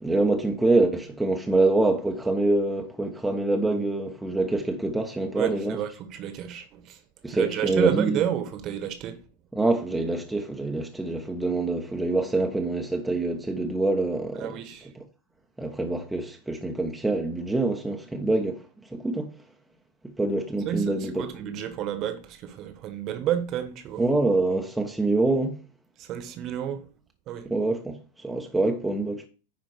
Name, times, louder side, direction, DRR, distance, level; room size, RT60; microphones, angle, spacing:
voice 1, 0.0-5.8 7.2-8.2 9.5-14.6 14.9-15.0 15.6-18.6 18.9-19.3 20.0-21.3 24.0-25.6 27.4-29.3, right 2 dB, 5° right, 1.1 m, -25 dB
voice 2, 5.3-7.0 7.3-9.2 14.4-14.9 20.6-24.1 26.0-26.8 27.3-27.5, right 10 dB, 35° right, 1.5 m, -30 dB
9.9 x 5.0 x 4.7 m
figure-of-eight pair, 90°, 0 cm